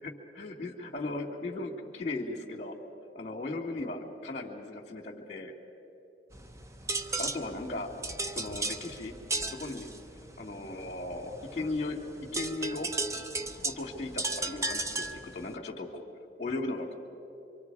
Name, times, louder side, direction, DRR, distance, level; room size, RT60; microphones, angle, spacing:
voice 1, 0.0-2.7 3.1-5.5 7.2-7.9 8.3-9.1 9.5-9.9 10.4-12.9 13.6-16.0 16.4-16.9, left 2 dB, 35° left, -6 dB, 2.6 m, -37 dB
sound 1, 6.3-15.6, right 2 dB, 15° right, 0.6 m, -36 dB
26.5 x 25.0 x 4.9 m, 2.8 s
head